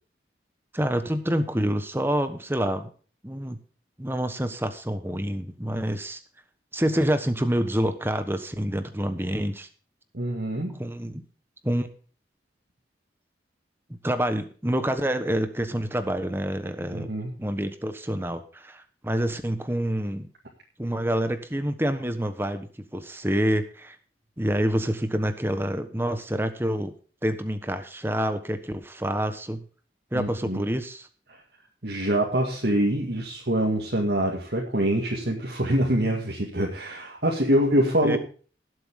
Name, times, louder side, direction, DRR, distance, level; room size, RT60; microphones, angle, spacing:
voice 1, 0.7-2.9 3.2-3.6 4.0-6.2 6.7-9.7 10.8-11.2 11.6-11.9 13.9-17.1 17.4-20.3 20.8-22.7 22.9-24.0 24.4-26.9 27.2-29.6 30.1-31.1 38.0-38.2, equal, 10° right, 10 dB, 1.2 m, -27 dB
voice 2, 10.1-10.8 16.9-17.3 30.1-30.6 31.8-38.2, right 1 dB, 60° right, -2 dB, 2.2 m, -25 dB
18.5 x 7.9 x 3.7 m, 0.39 s
head